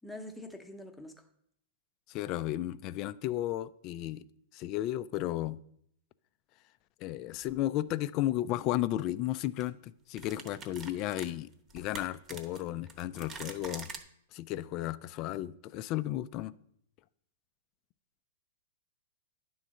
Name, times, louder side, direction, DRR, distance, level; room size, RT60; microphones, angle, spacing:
voice 1, 0.0-1.3, left 1 dB, 5° left, 0.8 m, -45 dB
voice 2, 2.1-4.3 4.5-5.6 7.0-13.9 14.3-16.5, left 14 dB, 40° left, 0.3 m, -34 dB
sound 1, 7.4-7.6 9.1-9.3 9.6-9.7 10.2-14.0, right 4 dB, 25° right, 1.0 m, -45 dB
9.8 x 3.9 x 6.3 m
hypercardioid pair, 130°, 0 cm